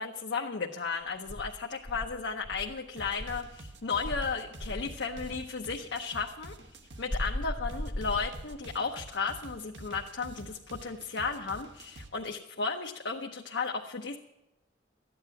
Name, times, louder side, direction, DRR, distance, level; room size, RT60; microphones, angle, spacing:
voice 1, 0.0-6.6 7.0-14.2, left 4 dB, 75° left, 1 dB, 0.8 m, -34 dB
Insect, 1.3-3.5 4.0-5.4 7.1-8.8, left 1 dB, 20° left, 0.6 m, -37 dB
sound 1, 3.0-7.1 7.7-12.1, right 2 dB, 80° right, 1.1 m, -48 dB
13.5 x 9.4 x 7.6 m, 0.95 s
head